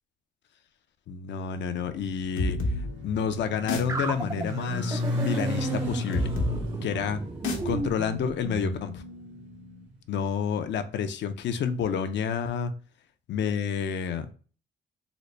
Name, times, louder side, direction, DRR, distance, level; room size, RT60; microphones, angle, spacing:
voice 1, 1.1-2.6 3.0-6.3 6.8-7.2 7.6-9.0 10.1-12.7 13.3-14.3, left 7 dB, 65° left, 9 dB, 0.5 m, -29 dB
Motorcycle, 1.8-10.0, equal, 65° right, 1.3 m, -35 dB
sound 1, 2.4-9.7, left 2 dB, 80° left, 0.9 m, -34 dB
sound 2, 3.9-8.8, right 3 dB, 15° right, 0.4 m, -34 dB
3.9 x 2.1 x 3.1 m, 0.39 s
cardioid pair, 90°, 20 cm